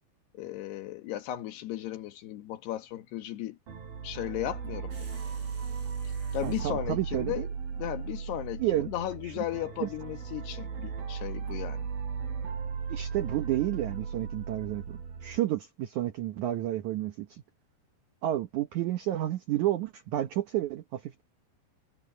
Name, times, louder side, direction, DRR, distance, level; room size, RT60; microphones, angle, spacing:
voice 1, 0.3-3.6 4.0-5.2 6.3-7.5 7.7-11.9, left 13 dB, 75° left, 3.6 m, -36 dB
sound 1, 3.7-15.4, right 6 dB, 60° right, 6.1 m, -36 dB
sound 2, 4.9-6.8, right 2 dB, 30° right, 7.3 m, -55 dB
voice 2, 6.4-7.5 8.6-8.9 9.2-9.4 9.8-9.9 12.9-17.4 18.2-21.2, right 14 dB, 85° right, 1.6 m, -31 dB
omnidirectional pair, 4.8 m